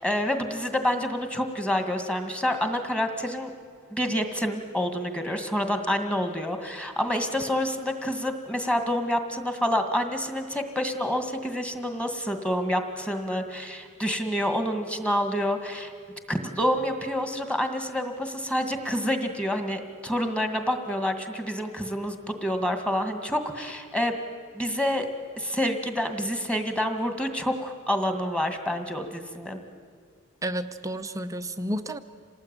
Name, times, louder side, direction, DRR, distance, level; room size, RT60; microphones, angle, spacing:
voice 1, 0.0-3.5 3.9-15.9 16.3-24.1 24.5-25.1 25.4-29.6, equal, 5° left, 6 dB, 2.1 m, -28 dB
voice 2, 30.4-32.0, right 1 dB, 15° right, 8 dB, 0.8 m, -31 dB
27.5 x 19.0 x 9.1 m, 2.1 s
head